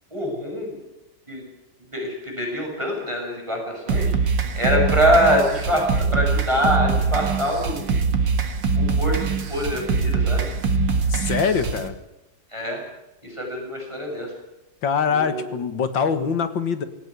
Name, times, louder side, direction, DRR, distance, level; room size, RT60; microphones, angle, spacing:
voice 1, 0.1-0.8 1.3-1.4 1.9-4.1 4.5-7.9 8.8-10.5 12.5-12.8 13.2-14.3 15.1-15.5, equal, 15° right, 0 dB, 6.9 m, -24 dB
sound 1, 3.9-11.9, right 4 dB, 75° right, 2.5 m, -23 dB
voice 2, 11.1-12.0 14.8-16.8, left 6 dB, 80° left, 11 dB, 2.4 m, -23 dB
18.5 x 17.5 x 9.7 m, 0.96 s
omnidirectional pair, 2.0 m